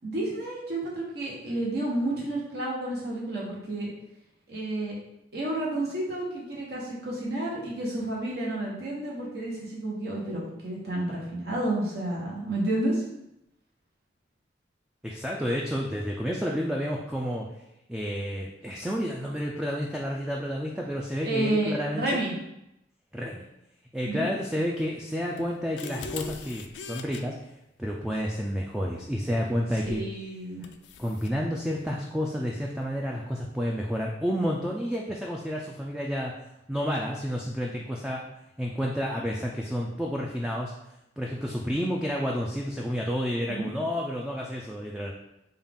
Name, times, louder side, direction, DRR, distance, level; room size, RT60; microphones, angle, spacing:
voice 1, 0.0-3.9 4.5-4.9 5.3-13.0 21.2-22.3 24.0-24.3 29.8-30.6 43.5-43.7, right 1 dB, 65° right, -5 dB, 1.0 m, -30 dB
voice 2, 15.0-17.5 17.9-22.2 23.1-23.5 23.9-27.3 27.8-30.0 31.0-36.3 36.7-38.2 38.6-40.7 41.2-45.1, equal, 5° right, -2 dB, 0.3 m, -30 dB
sound 1, 25.4-27.2 29.9-30.1 30.6-31.4, left 5 dB, 85° left, 0.4 m, -40 dB
5.4 x 2.4 x 3.5 m, 0.86 s
head